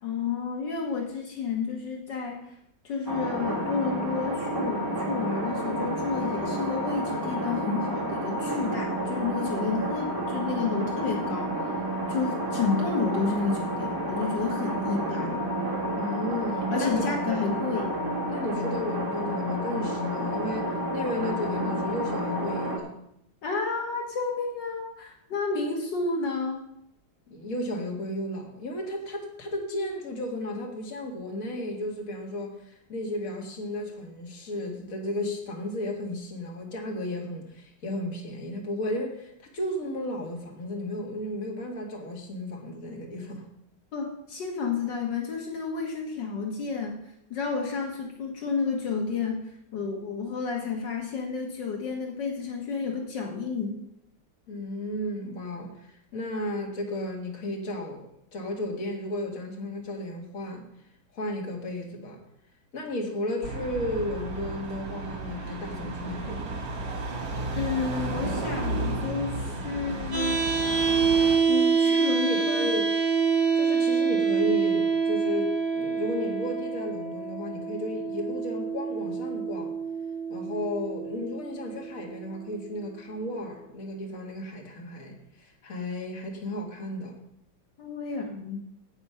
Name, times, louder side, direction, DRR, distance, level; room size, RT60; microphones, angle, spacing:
voice 1, 0.0-2.6 2.8-11.6 12.1-15.4 16.7-17.9 23.4-26.7 43.9-47.0 47.3-49.4 49.7-53.8 67.5-70.4 71.5-72.7 87.8-88.6, left 4 dB, 75° left, 2 dB, 2.2 m, -31 dB
sound 1, 3.1-22.8, right 1 dB, 10° right, 1.7 m, -30 dB
voice 2, 16.0-17.6 18.3-22.9 27.3-43.4 54.5-60.6 61.1-62.2 62.7-66.6 72.1-72.8 73.5-79.7 80.3-87.1, left 1 dB, 45° left, 1 dB, 2.3 m, -34 dB
sound 2, 63.4-71.4, right 2 dB, 85° right, 2.7 m, -33 dB
sound 3, 70.1-82.1, right 5 dB, 60° right, 3.1 m, -26 dB
9.6 x 8.5 x 5.7 m, 0.76 s
omnidirectional pair, 2.0 m